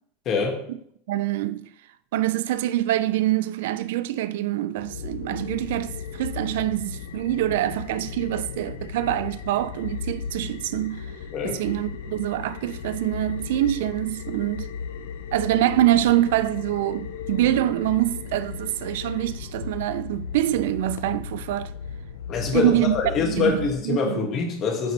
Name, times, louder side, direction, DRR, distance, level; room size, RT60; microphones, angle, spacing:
voice 1, 0.3-0.6 11.3-11.6 22.3-24.9, left 5 dB, 35° left, 1.8 m, -25 dB
voice 2, 1.1-1.6 2.1-11.1 11.4-14.7 15.3-21.7 22.5-23.0 23.3-23.6 23.8-24.2, right 13 dB, 75° right, 0.3 m, -25 dB
sound 1, 4.8-23.7, left 6 dB, 85° left, 0.7 m, -36 dB
9.9 x 4.1 x 3.2 m
supercardioid pair, 135°, 0 cm